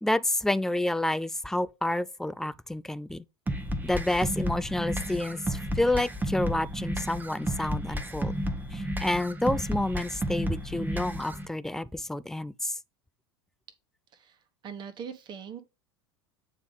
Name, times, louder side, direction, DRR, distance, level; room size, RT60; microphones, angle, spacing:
voice 1, 0.0-3.2 3.8-8.4 8.7-12.8, left 1 dB, 5° left, 0.3 m, -29 dB
sound 1, 3.5-11.5, equal, 10° right, 1.1 m, -32 dB
voice 2, 14.1-15.6, right 7 dB, 35° right, 1.2 m, -42 dB
8.8 x 3.4 x 5.3 m
figure-of-eight pair, 80°, 14 cm